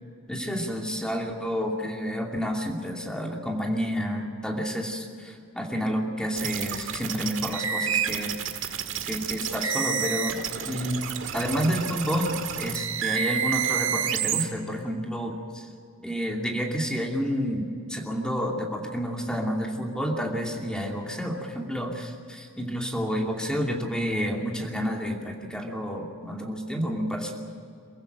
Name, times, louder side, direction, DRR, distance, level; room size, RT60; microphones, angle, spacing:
voice 1, 0.3-8.3 9.1-10.4 10.7-11.0 11.3-15.7 16.0-27.3, equal, 5° left, 0 dB, 2.6 m, -30 dB
sound 1, 6.4-14.4, right 8 dB, 70° right, 1.7 m, -29 dB
23.5 x 15.0 x 9.2 m, 2.4 s
head